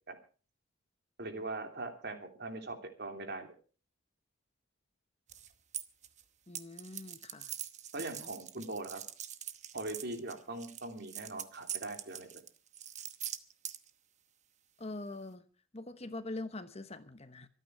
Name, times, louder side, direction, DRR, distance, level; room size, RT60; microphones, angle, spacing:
voice 1, 1.2-3.5 7.9-9.0 9.7-12.4, right 2 dB, 55° right, 3.2 m, -41 dB
sound 1, 5.3-6.2 6.6-13.9, right 10 dB, 35° right, 1.0 m, -43 dB
voice 2, 6.5-7.5 8.1-8.3 14.8-15.4 15.7-17.5, left 2 dB, 30° left, 1.1 m, -43 dB
25.0 x 9.4 x 4.8 m
head